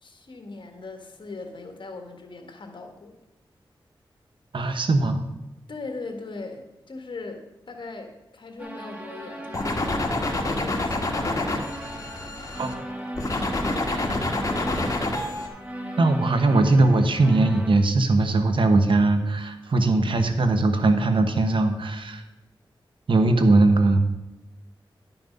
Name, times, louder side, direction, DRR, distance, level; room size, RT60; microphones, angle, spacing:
voice 1, 0.0-3.1 5.7-11.4, left 3 dB, 60° left, 4 dB, 1.6 m, -39 dB
voice 2, 4.5-5.2 12.6-12.7 16.0-22.2 23.1-24.0, right 2 dB, 70° right, 7 dB, 1.1 m, -20 dB
sound 1, 8.6-17.7, right 1 dB, 15° right, 1.6 m, -37 dB
sound 2, 9.5-12.7 13.2-15.5, left 2 dB, 40° left, 1.7 m, -27 dB
11.0 x 5.9 x 5.3 m, 1.0 s
cardioid pair, 65°, 9 cm